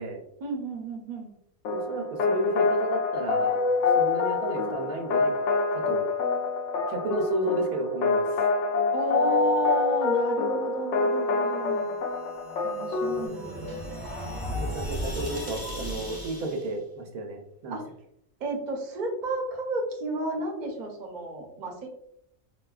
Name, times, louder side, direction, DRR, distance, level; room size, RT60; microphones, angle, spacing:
voice 1, 0.4-1.3 8.9-12.0 12.6-13.8 17.7-17.8 18.4-21.9, right 3 dB, 45° right, 0 dB, 0.7 m, -32 dB
sound 1, 1.6-13.3, left 4 dB, 65° left, 0.8 m, -26 dB
voice 2, 1.7-3.7 4.0-5.3 5.7-6.0 6.9-8.4 14.5-17.8, right 1 dB, 85° right, 3 dB, 1.1 m, -32 dB
sound 2, 12.2-16.7, equal, 25° left, 0.5 m, -35 dB
4.4 x 2.2 x 2.3 m, 0.75 s
omnidirectional pair, 1.5 m